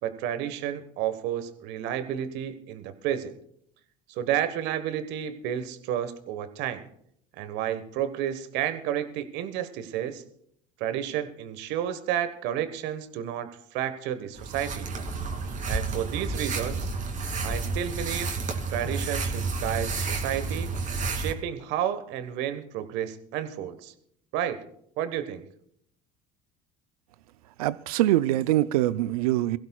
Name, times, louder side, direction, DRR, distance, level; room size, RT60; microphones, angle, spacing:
voice 1, 0.0-3.4 4.1-6.9 7.4-10.2 10.8-14.9 15.7-16.9 17.4-18.3 18.7-20.7 21.1-23.9 24.3-24.6 25.0-25.4, right 10 dB, 70° right, 1.3 m, -31 dB
sound 1, 14.3-21.3, right 4 dB, 45° right, 2.7 m, -30 dB
voice 2, 27.6-29.6, right 15 dB, 85° right, 0.5 m, -24 dB
23.0 x 16.0 x 2.3 m
hypercardioid pair, 75°, 19 cm